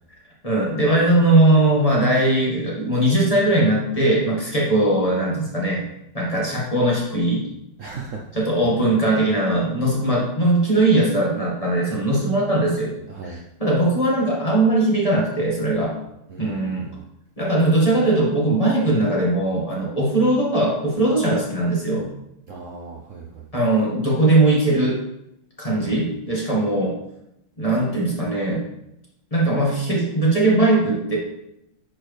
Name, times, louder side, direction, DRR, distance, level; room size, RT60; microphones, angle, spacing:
voice 1, 0.4-5.8 6.1-7.5 8.3-12.9 13.2-15.9 16.4-16.9 17.4-22.1 23.5-25.0 25.6-27.0 27.6-28.6 29.3-31.2, right 2 dB, 15° left, -4 dB, 1.7 m, -20 dB
voice 2, 7.8-8.7 13.1-13.4 16.3-17.0 22.5-23.5 25.8-26.0, right 4 dB, 85° right, -1 dB, 0.6 m, -37 dB
10.5 x 4.4 x 3.3 m, 0.83 s
omnidirectional pair, 2.4 m